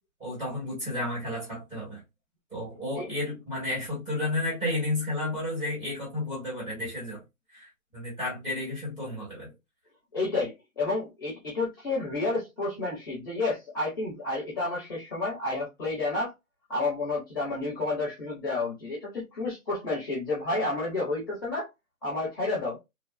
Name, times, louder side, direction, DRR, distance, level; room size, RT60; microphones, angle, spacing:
voice 1, 0.2-2.0 2.5-7.2 7.5-9.5, left 1 dB, 10° right, 1.2 m, -32 dB
voice 2, 10.1-16.3 16.7-21.7 22.0-22.8, left 2 dB, 15° left, 0.8 m, -30 dB
3.2 x 2.3 x 2.4 m
hypercardioid pair, 160°, 43 cm